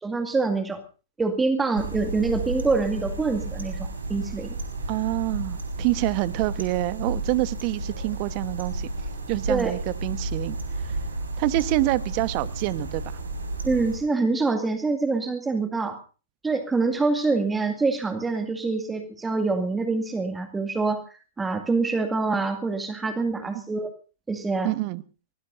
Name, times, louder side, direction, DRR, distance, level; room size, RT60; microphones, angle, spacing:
voice 1, 0.0-0.8 1.2-4.6 9.5-9.7 13.6-16.0 16.4-23.9 24.3-24.7, right 3 dB, 10° right, 7 dB, 2.1 m, -25 dB
sound 1, 1.8-14.0, right 2 dB, 80° right, 5.5 m, -32 dB
voice 2, 4.9-8.9 9.3-10.6 10.8-11.0 11.4-13.2 23.4-23.6 24.6-25.0, right 19 dB, 45° right, 15 dB, 1.2 m, -27 dB
24.0 x 19.0 x 2.7 m, 0.35 s
figure-of-eight pair, 110°, 0 cm